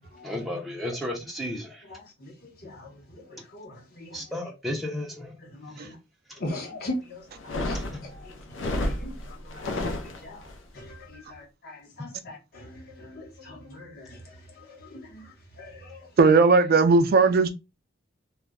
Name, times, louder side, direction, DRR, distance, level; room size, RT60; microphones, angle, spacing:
voice 1, 0.2-1.8 4.1-5.3 5.8-5.9 7.7-7.8, left 1 dB, ahead, 0.5 m, -33 dB
voice 2, 1.9-2.3 2.6-4.2 5.4-6.0 6.4-10.5 10.7-16.1, left 1 dB, 55° left, 0.9 m, -41 dB
sound 1, 7.3-10.6, left 1 dB, 70° left, 0.5 m, -31 dB
voice 3, 16.2-17.5, right 4 dB, 50° right, 0.4 m, -17 dB
2.3 x 2.0 x 3.5 m
head